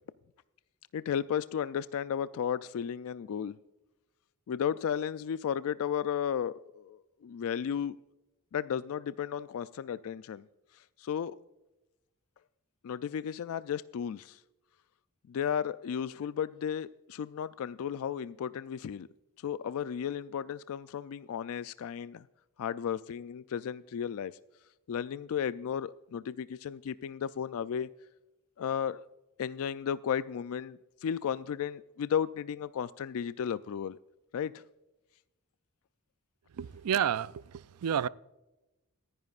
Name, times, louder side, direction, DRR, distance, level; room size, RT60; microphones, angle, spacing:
voice 1, 0.9-3.6 4.5-8.0 8.5-10.5 11.0-11.4 12.8-14.4 15.3-19.1 19.4-22.2 22.6-24.3 24.9-27.9 28.6-29.0 29.4-34.0 34.3-34.6, left 8 dB, 65° left, 0.3 m, -34 dB
voice 2, 36.5-38.1, right 8 dB, 80° right, 0.4 m, -30 dB
26.5 x 10.5 x 2.4 m
head